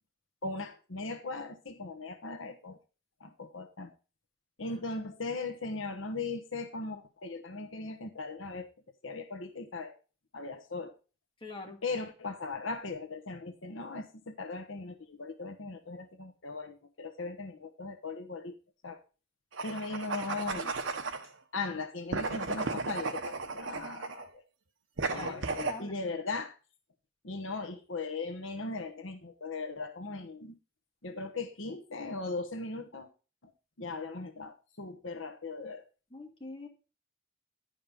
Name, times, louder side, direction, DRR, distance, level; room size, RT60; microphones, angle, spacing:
voice 1, 0.4-2.8 3.2-3.9 4.6-8.7 9.0-9.9 10.3-10.9 11.8-18.6 18.8-19.0 19.6-20.7 21.5-24.4 25.1-26.5 27.2-30.5 31.0-33.1 33.4-33.5 33.8-35.8, left 3 dB, 80° left, 6 dB, 1.2 m, -38 dB
voice 2, 11.4-11.8 25.1-25.3 25.6-25.9 36.1-36.7, left 3 dB, 25° left, 0 dB, 2.1 m, -44 dB
sound 1, 19.5-21.3 22.1-24.3 25.0-25.8, right 4 dB, 75° right, 1.1 m, -35 dB
11.0 x 5.4 x 5.2 m, 0.34 s
head